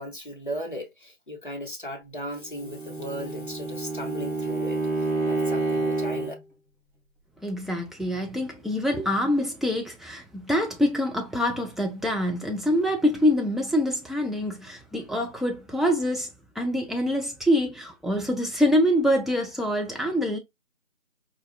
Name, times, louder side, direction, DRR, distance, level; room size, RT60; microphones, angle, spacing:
voice 1, 0.0-6.3, equal, 40° left, 0.8 m, -36 dB
Bowed string instrument, 2.5-6.4, right 3 dB, 30° right, 2.5 m, -28 dB
voice 2, 7.4-16.3 16.6-20.4, equal, ahead, 0.4 m, -25 dB
4.6 x 2.2 x 2.4 m
figure-of-eight pair, 180°, 40 cm